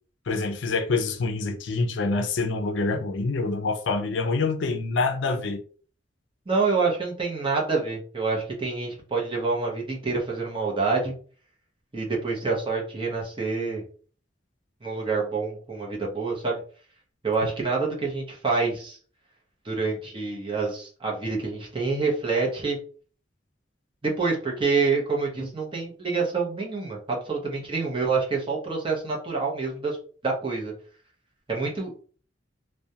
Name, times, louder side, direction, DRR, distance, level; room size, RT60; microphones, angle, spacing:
voice 1, 0.3-5.6, left 3 dB, 70° left, 0.4 m, -26 dB
voice 2, 6.5-11.1 11.9-13.8 14.8-16.6 17.2-19.0 19.6-22.8 24.0-30.0 30.2-30.7 31.5-32.0, right 4 dB, 25° right, 0.7 m, -27 dB
2.3 x 2.1 x 2.7 m
head